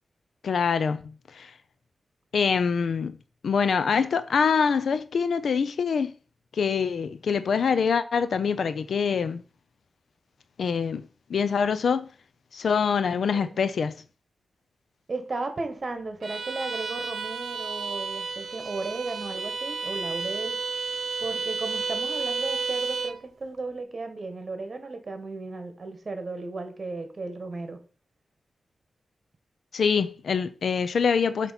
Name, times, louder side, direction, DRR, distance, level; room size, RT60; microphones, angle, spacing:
voice 1, 0.4-1.5 2.3-3.2 3.4-6.1 6.5-9.4 10.6-12.1 12.5-14.0 29.7-31.5, left 6 dB, 80° left, 0.4 m, -25 dB
voice 2, 15.1-20.6 21.2-27.8, right 3 dB, 40° right, 1.4 m, -35 dB
Bowed string instrument, 16.2-23.2, right 4 dB, 65° right, 0.9 m, -32 dB
7.8 x 3.0 x 5.7 m
wide cardioid pair, 110°, 0 cm